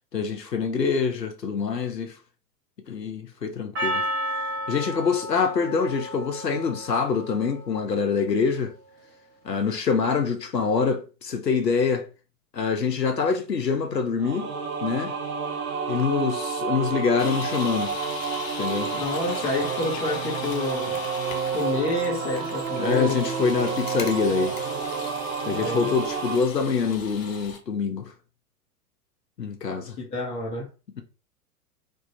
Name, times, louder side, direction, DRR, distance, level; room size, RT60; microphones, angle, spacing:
voice 1, 0.1-2.1 2.9-4.0 4.7-8.7 9.4-12.1 12.5-14.5 14.8-15.1 15.9-18.0 18.6-18.9 22.8-24.6 25.5-28.1 29.4-30.0, left 5 dB, 85° left, 0.7 m, -25 dB
Percussion, 3.8-8.1, equal, 30° right, 0.9 m, -32 dB
sound 1, 14.2-26.4, right 6 dB, 60° right, 0.8 m, -30 dB
sound 2, 17.2-27.6, left 5 dB, 55° left, 0.8 m, -38 dB
voice 2, 18.9-21.0 21.5-23.2 25.5-25.9 30.0-30.7, left 2 dB, 15° left, 0.4 m, -29 dB
3.2 x 2.1 x 2.8 m
figure-of-eight pair, 95°, 48 cm